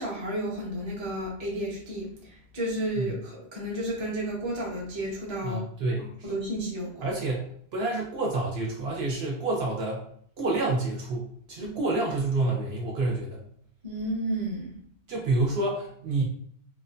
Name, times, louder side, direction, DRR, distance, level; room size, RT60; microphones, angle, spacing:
voice 1, 0.0-5.6 6.2-7.1 11.6-11.7 13.8-14.8, right 1 dB, 30° right, -3 dB, 0.6 m, -32 dB
voice 2, 5.4-6.3 7.0-10.0 10.4-13.4 15.1-16.2, right 2 dB, 65° right, -2 dB, 0.8 m, -28 dB
2.9 x 2.1 x 2.5 m, 0.62 s
omnidirectional pair, 1.2 m